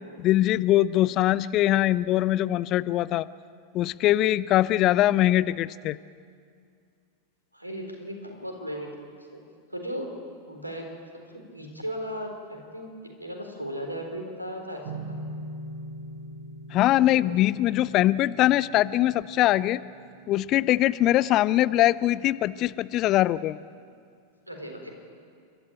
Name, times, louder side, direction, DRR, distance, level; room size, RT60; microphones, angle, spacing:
voice 1, 0.2-3.3 3.7-6.0 16.7-19.8 20.3-23.6, left 14 dB, 35° left, 19 dB, 0.5 m, -22 dB
voice 2, 7.5-8.9 9.3-9.4 9.7-10.1 10.5-10.9 11.3-12.9 13.2-14.8 17.1-17.2 24.5-24.9, equal, 85° right, 3 dB, 4.0 m, -36 dB
sound 1, 14.8-22.0, right 1 dB, 50° right, 7.6 m, -42 dB
29.5 x 13.5 x 9.0 m, 2.2 s
figure-of-eight pair, 90°, 0 cm